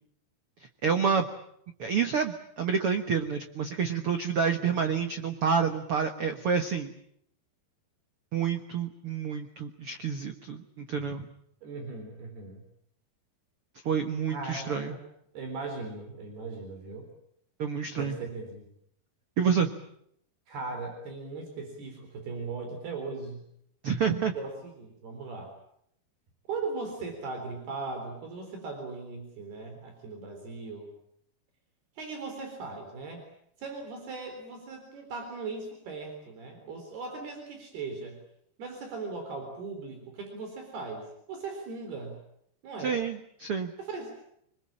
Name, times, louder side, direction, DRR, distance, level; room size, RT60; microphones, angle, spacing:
voice 1, 0.8-1.3 1.8-6.9 8.3-11.3 13.8-15.0 17.6-18.2 19.4-19.7 23.8-24.3 42.8-43.7, right 6 dB, 85° right, 7 dB, 1.2 m, -28 dB
voice 2, 4.6-5.0 11.6-12.6 14.3-15.0 15.3-17.1 17.9-18.7 20.5-23.4 24.4-25.5 26.5-30.9 32.0-33.2 33.6-38.2 38.6-42.2 42.6-43.0 43.8-44.2, right 4 dB, 70° right, 4 dB, 5.9 m, -38 dB
26.5 x 21.5 x 8.8 m, 0.72 s
omnidirectional pair, 4.7 m